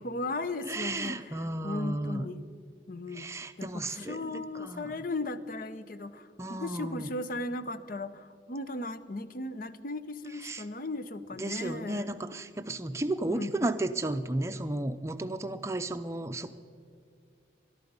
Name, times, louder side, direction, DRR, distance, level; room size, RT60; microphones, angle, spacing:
voice 1, 0.0-2.5 2.9-3.3 3.6-12.1 13.3-13.7, left 2 dB, 45° left, 12 dB, 0.7 m, -37 dB
voice 2, 0.7-2.3 3.1-4.9 6.4-7.1 10.4-10.6 11.4-16.5, right 2 dB, 15° right, 8 dB, 0.6 m, -33 dB
22.5 x 12.0 x 5.4 m, 2.4 s
head